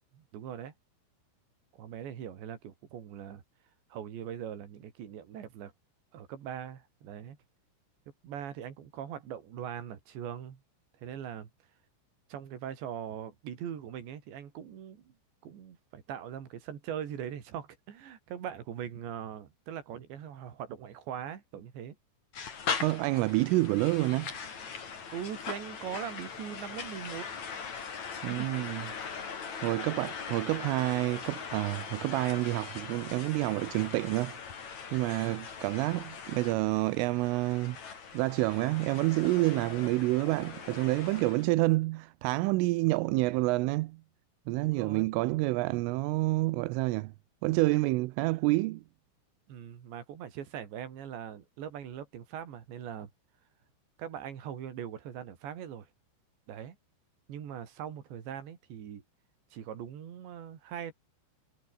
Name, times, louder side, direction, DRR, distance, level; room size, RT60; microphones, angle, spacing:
voice 1, 0.1-0.7 1.7-3.4 3.9-5.7 6.1-7.4 8.2-10.6 11.0-11.5 12.3-15.1 15.4-22.0 25.1-27.3 28.4-28.5 35.2-35.5 44.6-45.1 49.5-53.1 54.0-55.9 56.5-56.8 57.3-59.0 59.5-60.9, right 9 dB, 60° right, 5.2 m, -41 dB
sound 1, 22.3-41.5, left 6 dB, 40° left, 4.2 m, -40 dB
voice 2, 22.8-24.3 28.2-28.9 29.6-34.4 34.9-37.8 38.1-44.0 44.5-47.1 47.4-48.8, right 21 dB, 85° right, 3.3 m, -28 dB
omnidirectional pair, 5.8 m